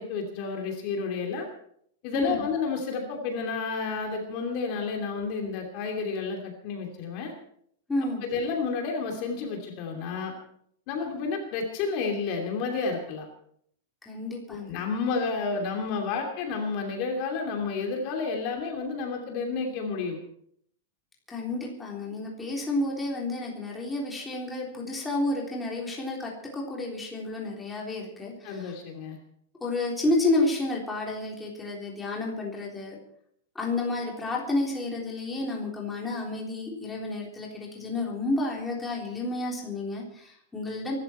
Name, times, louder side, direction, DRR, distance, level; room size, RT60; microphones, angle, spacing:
voice 1, 0.0-1.5 2.0-7.3 8.2-10.3 10.9-13.3 14.5-20.2 28.4-29.2, left 4 dB, 40° left, 2 dB, 2.8 m, -31 dB
voice 2, 2.1-2.4 7.9-8.3 14.1-14.8 21.3-28.7 29.6-33.0 33.6-40.9, left 2 dB, 5° left, -2 dB, 3.6 m, -30 dB
24.0 x 12.5 x 4.5 m, 0.68 s
supercardioid pair, 170°, 0 cm